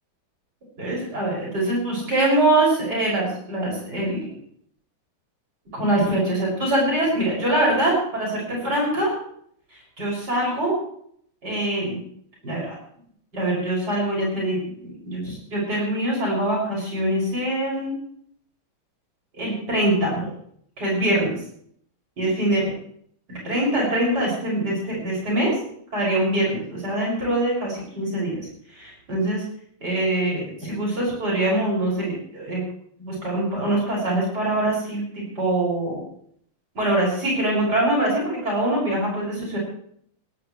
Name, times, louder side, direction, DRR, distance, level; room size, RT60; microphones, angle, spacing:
voice 1, 0.8-4.4 5.7-9.1 10.0-10.7 11.4-12.0 12.4-12.8 13.3-18.0 19.4-20.3 20.8-21.4 22.2-22.6 23.3-25.5 25.9-28.5 28.8-29.4 29.8-32.6 33.0-36.0 36.8-39.6, right 1 dB, 50° right, -4 dB, 7.2 m, -23 dB
18.5 x 17.5 x 3.3 m, 0.65 s
omnidirectional pair, 2.3 m